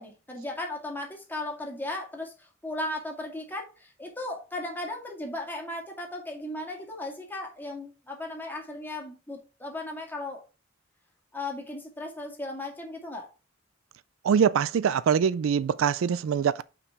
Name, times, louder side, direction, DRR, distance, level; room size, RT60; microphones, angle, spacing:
voice 1, 0.0-10.4 11.3-13.3, left 2 dB, 10° left, 2.0 m, -36 dB
voice 2, 14.2-16.6, right 7 dB, 70° right, 0.4 m, -23 dB
5.9 x 5.1 x 4.7 m
head